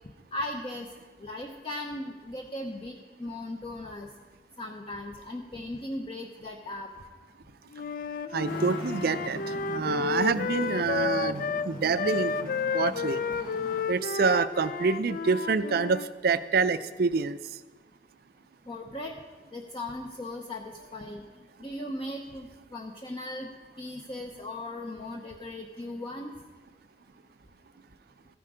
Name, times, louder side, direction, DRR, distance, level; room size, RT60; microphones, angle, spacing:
voice 1, 0.3-0.9 1.2-4.1 4.6-6.9 18.7-19.2 19.5-21.2 21.6-23.5 23.8-26.3, left 1 dB, 30° left, 1 dB, 0.8 m, -37 dB
Wind instrument woodwind instrument, 7.7-16.1, left 5 dB, 50° left, 0.4 m, -32 dB
voice 2, 8.3-13.2 13.9-17.4, right 5 dB, 60° right, 13 dB, 0.5 m, -27 dB
Traffic noise roadway noise, 8.4-13.8, equal, 75° left, 3.2 m, -40 dB
14.5 x 10.0 x 5.0 m, 1.3 s
head